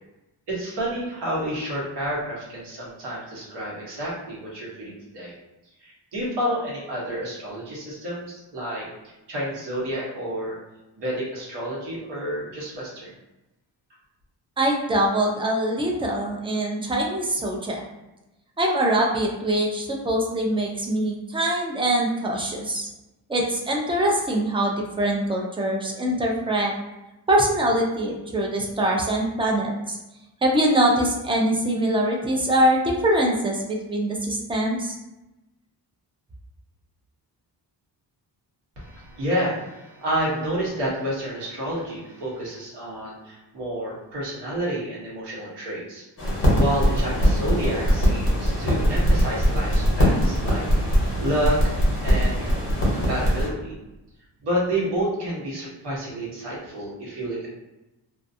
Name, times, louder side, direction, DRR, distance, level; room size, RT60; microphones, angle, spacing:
voice 1, 0.5-5.3 5.8-10.6 11.0-13.1 38.8-46.0 46.5-50.9 51.2-51.7 52.0-52.6 52.9-53.7 54.4-57.5, right 1 dB, 70° right, -5 dB, 1.1 m, -29 dB
voice 2, 14.6-17.8 18.6-22.9 23.3-26.7 27.3-30.0 30.4-34.9, right 1 dB, 15° right, -1 dB, 0.3 m, -23 dB
sound 1, 46.2-53.5, equal, 30° left, 1.0 m, -21 dB
2.4 x 2.3 x 2.6 m, 0.99 s
wide cardioid pair, 145°, 43 cm